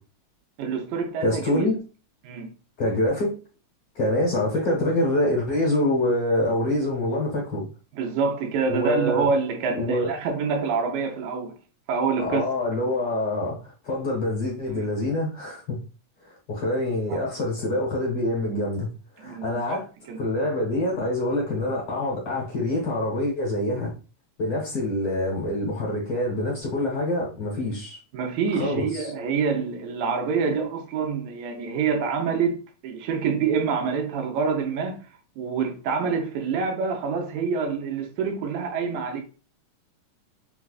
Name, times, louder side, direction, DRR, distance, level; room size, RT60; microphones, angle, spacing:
voice 1, 0.6-1.7 2.2-2.5 7.9-11.5 11.9-12.5 14.8-14.9 17.1-17.2 19.2-19.8 20.1-20.2 28.1-35.0 35.4-39.2, right 5 dB, 80° right, 1.8 m, -26 dB
voice 2, 1.2-1.8 2.8-3.3 3.9-7.6 8.7-9.3 9.7-10.1 12.2-15.8 16.3-18.9 19.2-19.8 20.2-23.9 24.4-28.0 28.5-29.0, left 1 dB, 60° left, 1.7 m, -25 dB
4.7 x 2.3 x 2.3 m
omnidirectional pair, 3.3 m